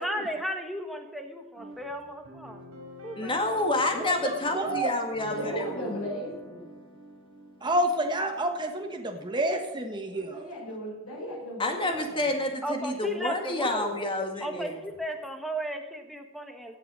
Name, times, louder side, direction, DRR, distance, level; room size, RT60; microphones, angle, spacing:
voice 1, 0.0-2.6 3.0-3.5 12.6-14.0 14.4-16.8, equal, ahead, 5 dB, 1.2 m, -35 dB
sound 1, 1.5-10.0, right 1 dB, 80° right, 5.2 m, -46 dB
voice 2, 3.2-6.0 11.6-14.7, left 2 dB, 20° left, 4 dB, 1.9 m, -29 dB
voice 3, 4.2-4.9 7.6-10.4, right 1 dB, 20° right, 3 dB, 1.4 m, -29 dB
voice 4, 5.3-6.8 10.1-12.2, equal, 75° left, -4 dB, 5.5 m, -37 dB
16.5 x 7.9 x 6.3 m, 1.2 s
head